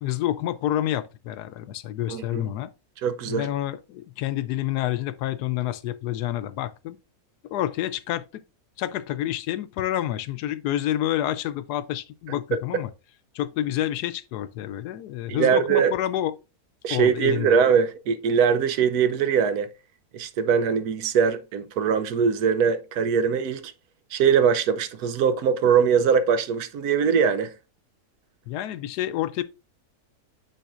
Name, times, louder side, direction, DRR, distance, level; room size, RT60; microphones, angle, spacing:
voice 1, 0.0-2.7 3.3-7.0 7.4-8.2 8.8-12.9 13.3-16.3 16.9-17.6 28.5-29.4, left 13 dB, 85° left, 1.2 m, -28 dB
voice 2, 2.1-2.4 3.0-3.5 15.3-15.9 16.8-19.7 20.1-23.7 24.1-27.5, right 7 dB, 75° right, 1.2 m, -22 dB
9.1 x 4.7 x 2.5 m
omnidirectional pair, 1.7 m